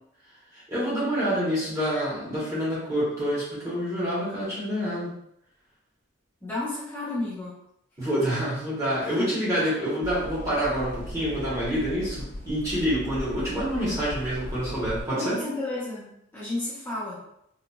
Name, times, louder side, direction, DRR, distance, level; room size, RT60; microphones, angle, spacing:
voice 1, 0.5-5.1 8.0-15.4, equal, 15° right, -8 dB, 1.3 m, -27 dB
voice 2, 6.4-7.5 9.0-9.3 9.6-9.7 15.1-17.2, left 2 dB, 10° left, -11 dB, 1.0 m, -32 dB
sound 1, 10.0-15.0, left 1 dB, 35° left, 1.1 m, -37 dB
4.0 x 2.7 x 2.3 m, 0.76 s
head